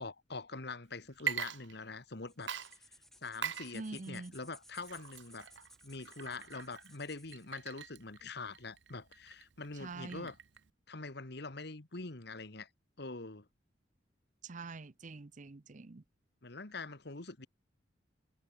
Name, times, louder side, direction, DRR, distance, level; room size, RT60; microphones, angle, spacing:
voice 1, 0.0-2.5 3.2-5.5 5.8-10.4 10.9-12.7 13.0-13.5 16.4-17.5, left 3 dB, 60° left, 1.8 m, -44 dB
Water / Liquid, 1.1-2.2 2.5-10.7, right 8 dB, 75° right, 1.0 m, -43 dB
sound 1, 2.3-7.5, left 1 dB, ahead, 5.6 m, -60 dB
voice 2, 3.7-4.3 9.7-10.3 14.4-16.0, right 3 dB, 45° right, 0.7 m, -45 dB
head